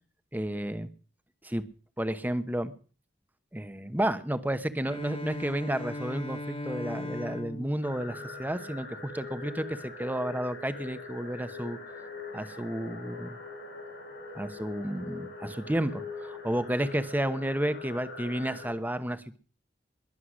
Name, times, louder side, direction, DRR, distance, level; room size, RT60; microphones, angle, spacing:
voice 1, 0.3-0.9 1.4-1.6 2.0-2.7 3.5-11.8 12.3-13.4 14.3-19.4, right 1 dB, 10° right, 12 dB, 1.0 m, -32 dB
Bowed string instrument, 4.8-8.9, left 1 dB, 30° left, 1.4 m, -39 dB
sound 1, 7.8-18.7, left 3 dB, 80° left, 6.6 m, -42 dB
21.5 x 7.8 x 6.4 m, 0.39 s
head